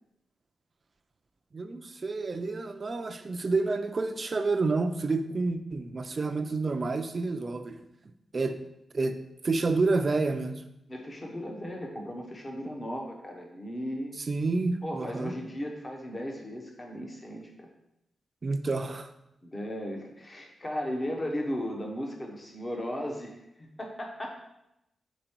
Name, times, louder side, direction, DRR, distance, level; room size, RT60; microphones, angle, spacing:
voice 1, 1.5-7.8 8.3-8.6 8.9-9.2 9.4-10.6 14.3-15.3 18.4-19.1, right 3 dB, 35° right, 8 dB, 0.4 m, -29 dB
voice 2, 10.9-14.1 14.8-17.7 19.4-24.3, equal, 25° left, 1 dB, 0.9 m, -36 dB
5.1 x 4.6 x 4.4 m, 0.86 s
wide cardioid pair, 150°, 0 cm